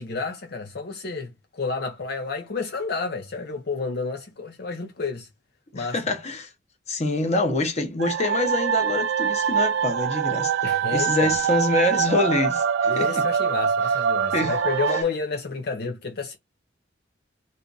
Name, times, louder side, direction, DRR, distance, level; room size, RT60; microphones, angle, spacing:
voice 1, 0.0-5.3 5.7-6.0 10.6-11.3 12.9-16.4, left 4 dB, 60° left, 0.7 m, -30 dB
voice 2, 5.8-6.5 6.9-10.5 10.9-13.2 14.3-14.5, left 2 dB, 35° left, 0.9 m, -25 dB
sound 1, 8.0-15.0, right 7 dB, 65° right, 0.3 m, -24 dB
3.5 x 2.6 x 3.8 m
head